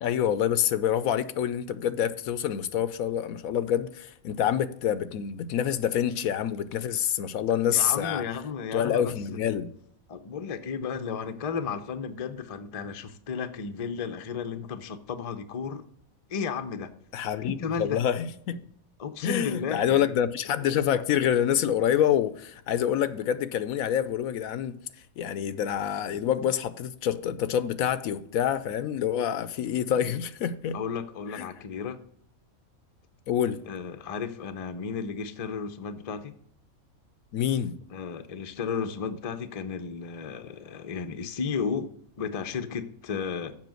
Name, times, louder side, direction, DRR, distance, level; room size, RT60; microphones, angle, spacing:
voice 1, 0.0-8.2 8.7-9.7 17.1-18.7 19.2-24.7 25.2-30.8 31.3-31.5 33.3-33.6 37.3-37.8, left 9 dB, 80° left, 1.1 m, -27 dB
voice 2, 7.7-9.1 10.1-15.8 16.3-16.9 17.4-18.0 19.0-20.2 30.7-32.0 33.7-36.3 37.9-43.5, left 6 dB, 35° left, 0.6 m, -33 dB
7.5 x 5.7 x 7.6 m
omnidirectional pair, 1.5 m